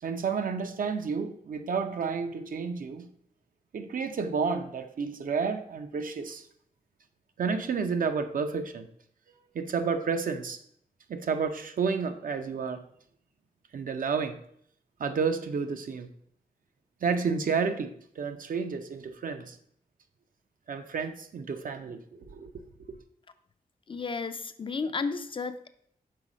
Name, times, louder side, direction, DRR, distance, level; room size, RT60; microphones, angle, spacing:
voice 1, 0.0-3.1 3.7-6.4 7.4-8.9 9.5-10.6 11.1-12.8 13.7-14.4 15.0-16.1 17.0-19.6 20.7-22.5, right 5 dB, 65° right, 8 dB, 0.6 m, -31 dB
voice 2, 23.9-25.7, left 4 dB, 35° left, 10 dB, 0.4 m, -33 dB
5.8 x 4.1 x 4.9 m, 0.67 s
wide cardioid pair, 150°, 15 cm